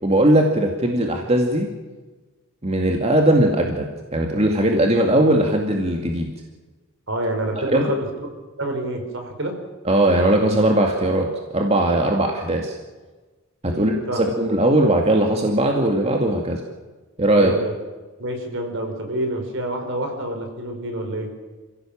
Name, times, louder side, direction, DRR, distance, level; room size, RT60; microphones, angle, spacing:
voice 1, 0.0-1.7 2.6-3.9 4.1-6.3 7.7-7.8 9.9-11.3 11.5-12.8 13.6-16.6 17.2-17.5, right 1 dB, 30° right, 2 dB, 2.3 m, -19 dB
voice 2, 7.1-8.1 8.6-9.5 13.7-14.2 17.3-17.7 18.2-21.3, right 1 dB, 65° right, 4 dB, 5.2 m, -27 dB
28.5 x 16.5 x 7.4 m, 1.3 s
head